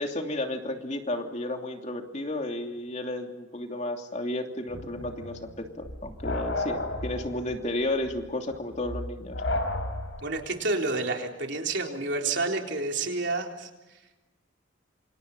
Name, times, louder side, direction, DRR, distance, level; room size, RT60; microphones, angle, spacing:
voice 1, 0.0-9.4, left 1 dB, 35° left, 3 dB, 2.9 m, -32 dB
sound 1, 4.7-10.4, left 2 dB, 75° left, 4.8 m, -33 dB
voice 2, 10.2-13.7, right 3 dB, 65° right, 2 dB, 4.0 m, -29 dB
28.0 x 27.0 x 5.6 m, 1.0 s
head